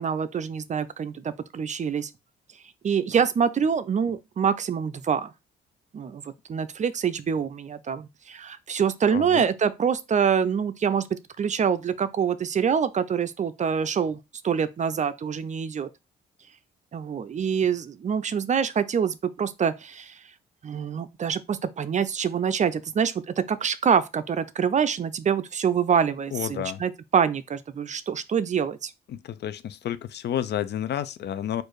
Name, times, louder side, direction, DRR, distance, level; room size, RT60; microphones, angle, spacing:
voice 1, 0.0-2.1 2.8-5.3 5.9-11.1 11.4-14.2 14.4-15.9 16.9-20.2 20.6-28.9, right 7 dB, 35° right, 0.5 m, -25 dB
voice 2, 9.1-9.4 26.3-26.8 29.1-31.6, left 10 dB, 60° left, 0.5 m, -30 dB
4.4 x 2.6 x 4.6 m
cardioid pair, 90°, 20 cm